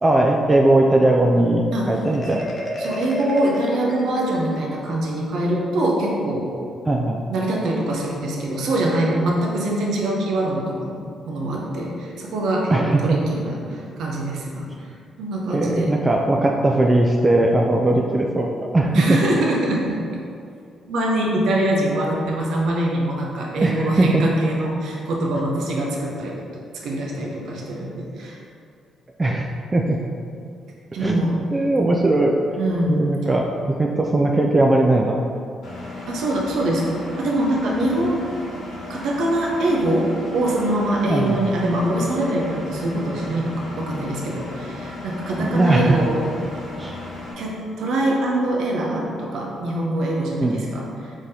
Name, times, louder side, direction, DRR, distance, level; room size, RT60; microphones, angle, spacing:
voice 1, 0.0-2.5 6.9-7.2 12.7-13.0 15.5-18.5 18.7-19.0 23.6-24.2 29.2-30.0 31.0-31.3 31.5-32.4 32.9-35.2 41.1-41.3 45.4-46.0 46.8-46.9 50.4-50.6, right 2 dB, 25° right, 0 dB, 0.4 m, -19 dB
Marimba xylophone, 2.0-4.8, left 1 dB, 40° left, 0.8 m, -31 dB
voice 2, 2.8-6.5 7.3-11.0 11.3-14.7 15.2-15.9 18.9-20.0 20.9-28.4 30.9-31.3 32.6-32.9 36.1-38.2 38.9-46.2 47.4-51.1, right 1 dB, 75° right, -2 dB, 0.7 m, -23 dB
Engine, 35.6-47.3, left 2 dB, 80° left, 1.1 m, -35 dB
4.7 x 3.8 x 2.8 m, 2.3 s
supercardioid pair, 65°, 0 cm